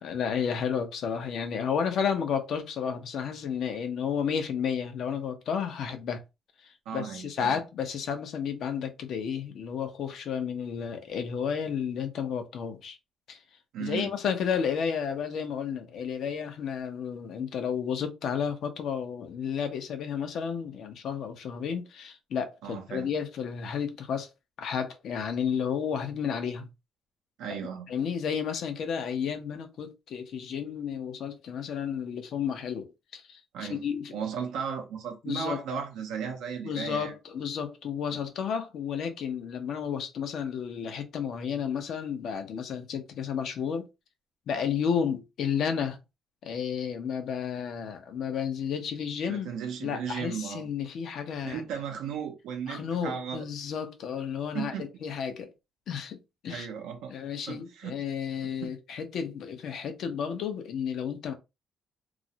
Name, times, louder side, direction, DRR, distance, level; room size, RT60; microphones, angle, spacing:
voice 1, 0.0-6.2 6.6-13.0 13.3-13.4 13.8-24.3 24.6-26.7 27.5-27.6 27.9-34.2 35.2-35.6 36.6-43.9 44.5-46.0 46.4-49.5 49.8-51.6 52.7-55.5 55.9-56.7 57.1-61.3, left 7 dB, 70° left, 0.6 m, -32 dB
voice 2, 6.9-7.6 13.7-14.1 22.6-23.1 27.4-27.9 33.5-33.8 34.1-37.1 49.3-50.7 51.4-53.4 54.5-54.9 56.5-57.2 57.5-57.9 58.6-58.7, right 7 dB, 90° right, 0.5 m, -35 dB
2.4 x 2.0 x 2.7 m
cardioid pair, 90°, 0 cm